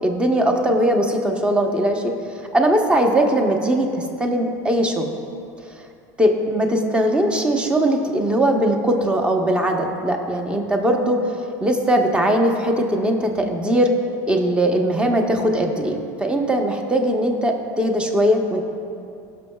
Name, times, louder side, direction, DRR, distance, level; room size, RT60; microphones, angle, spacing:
voice 1, 0.0-2.1 2.5-5.1 6.2-11.2 11.6-13.9 14.3-18.6, right 1 dB, 10° right, 3 dB, 0.9 m, -20 dB
19.0 x 6.3 x 2.3 m, 2.5 s
supercardioid pair, 115°, 9 cm